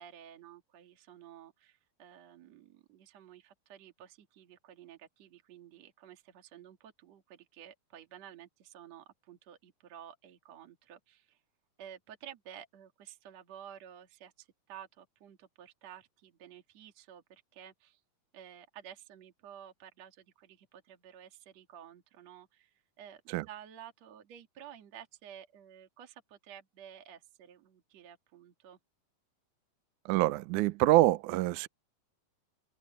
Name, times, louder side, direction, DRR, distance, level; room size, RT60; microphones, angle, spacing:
voice 1, 0.0-11.4 11.8-18.0 18.3-23.2 23.5-28.8, right 10 dB, 50° right, 2.9 m, -52 dB
voice 2, 30.1-31.7, right 17 dB, 80° right, 1.8 m, -26 dB
open air
omnidirectional pair, 4.2 m